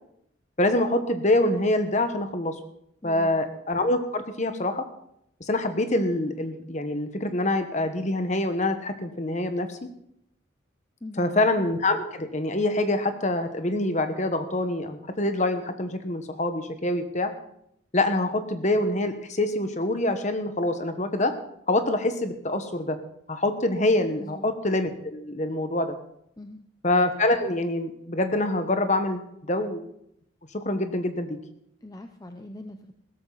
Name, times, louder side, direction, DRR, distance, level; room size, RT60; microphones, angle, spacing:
voice 1, 0.6-2.5 3.0-4.8 5.4-9.9 11.2-17.3 17.9-21.3 21.7-23.0 23.3-25.9 26.8-29.2 29.5-29.9 30.5-31.3, left 1 dB, 35° left, 8 dB, 1.3 m, -25 dB
voice 2, 11.0-11.3 24.2-24.5 26.4-26.6 31.8-32.9, left 1 dB, 20° left, 6 dB, 0.6 m, -41 dB
16.5 x 13.5 x 4.1 m, 0.75 s
head